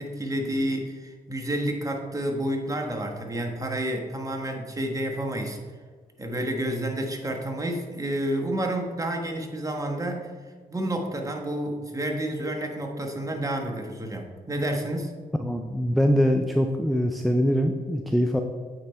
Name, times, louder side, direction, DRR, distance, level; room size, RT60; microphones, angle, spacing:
voice 1, 0.0-5.6 6.2-10.3 10.7-15.1, right 1 dB, 20° right, 2 dB, 1.2 m, -30 dB
voice 2, 15.4-18.4, equal, ahead, 5 dB, 0.4 m, -23 dB
8.7 x 3.3 x 4.4 m, 1.5 s
cardioid pair, 70°, 16 cm